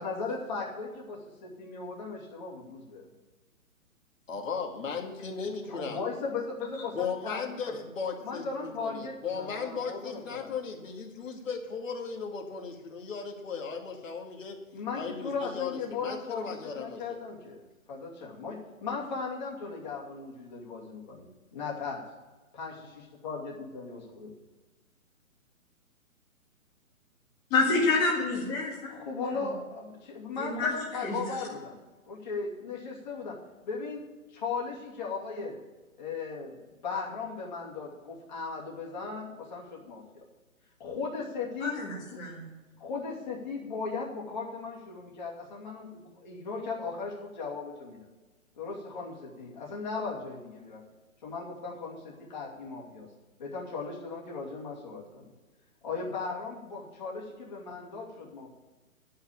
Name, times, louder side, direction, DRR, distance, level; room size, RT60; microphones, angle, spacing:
voice 1, 0.0-1.2 1.4-3.1 5.7-7.8 8.2-10.5 14.7-17.6 17.9-22.0 22.5-24.3 28.9-31.7 32.0-33.3 33.6-34.0 34.3-35.6 36.0-36.6 36.8-40.2 40.8-41.8 42.1-42.2 42.8-48.0 48.6-50.8 51.2-53.1 53.4-55.2 55.8-58.5, left 4 dB, 30° left, -3 dB, 2.6 m, -37 dB
voice 2, 4.3-6.0 6.9-14.6 14.9-17.2, left 5 dB, 65° left, 2 dB, 2.4 m, -36 dB
voice 3, 27.5-29.0 29.3-29.5 30.3-30.7 31.0-31.2 41.6-42.5, left 3 dB, 15° left, -3 dB, 2.0 m, -28 dB
11.5 x 5.8 x 8.6 m, 1.2 s
hypercardioid pair, 170°, 42 cm